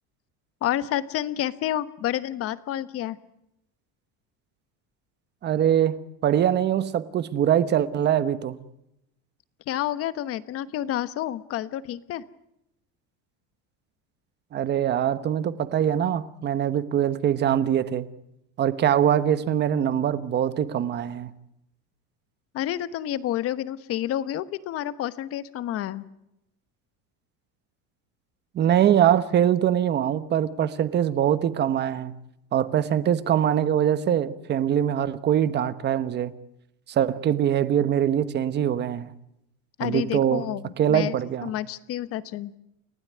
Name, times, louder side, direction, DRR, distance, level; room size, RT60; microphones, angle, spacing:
voice 1, 0.6-3.2 9.7-12.2 22.5-26.1 39.8-41.2 41.4-42.5, left 12 dB, 40° left, 14 dB, 1.2 m, -29 dB
voice 2, 5.4-8.6 14.5-18.1 18.6-21.3 28.5-32.1 32.5-36.3 36.9-39.1 39.8-40.4 40.8-41.5, right 10 dB, 30° right, 14 dB, 1.1 m, -23 dB
29.5 x 16.0 x 9.5 m, 0.84 s
cardioid pair, 170°, 36 cm